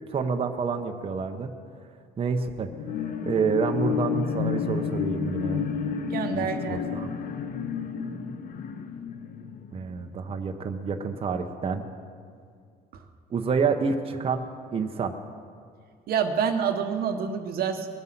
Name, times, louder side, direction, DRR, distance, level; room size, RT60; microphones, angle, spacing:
voice 1, 0.1-1.5 2.2-2.7 3.2-5.7 6.3-7.2 9.7-11.9 13.3-15.1, right 5 dB, 35° right, 5 dB, 0.9 m, -28 dB
sound 1, 2.7-10.5 10.9-11.0, left 7 dB, 55° left, 0.9 m, -31 dB
voice 2, 6.1-7.1 16.1-17.9, right 7 dB, 65° right, 5 dB, 1.1 m, -27 dB
20.5 x 7.6 x 5.9 m, 2.2 s
cardioid pair, 110°, 17 cm